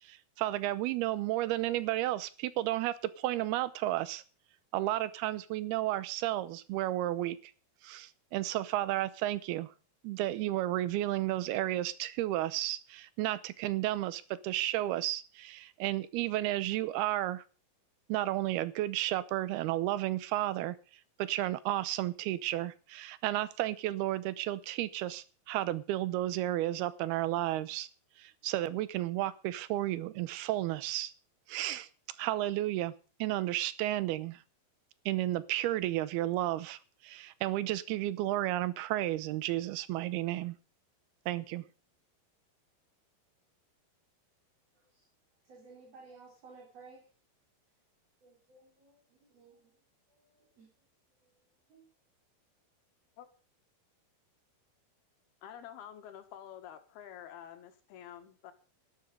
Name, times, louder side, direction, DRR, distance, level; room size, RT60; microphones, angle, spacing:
voice 1, 0.0-4.2 4.7-7.5 7.8-9.7 10.0-17.4 18.1-20.8 21.2-27.9 28.2-31.1 31.5-31.9 32.2-32.9 33.2-34.4 35.1-40.6 41.3-41.6, right 15 dB, 90° right, 2.8 m, -32 dB
voice 2, 44.7-45.1 45.4-47.1 48.2-49.8 50.1-50.7 51.1-51.8, right 4 dB, 45° right, 4.7 m, -57 dB
voice 3, 55.4-58.5, left 10 dB, 90° left, 3.6 m, -48 dB
12.5 x 11.5 x 5.3 m
omnidirectional pair, 4.4 m